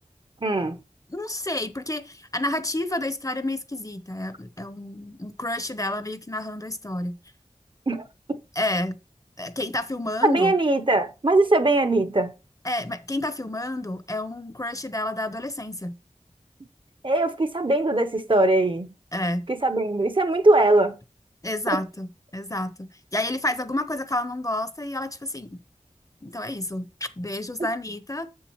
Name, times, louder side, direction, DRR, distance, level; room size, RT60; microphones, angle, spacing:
voice 1, 0.4-0.8 7.9-8.4 10.2-12.3 17.0-18.9 19.5-21.0 21.7-21.8 27.6-27.7, right 2 dB, 40° right, 0.7 m, -21 dB
voice 2, 1.1-7.2 8.6-9.0 9.4-10.5 12.6-15.9 19.1-19.5 21.4-25.6 26.2-28.4, left 1 dB, 25° left, 0.7 m, -30 dB
7.1 x 6.9 x 2.9 m
wide cardioid pair, 40°, 13 cm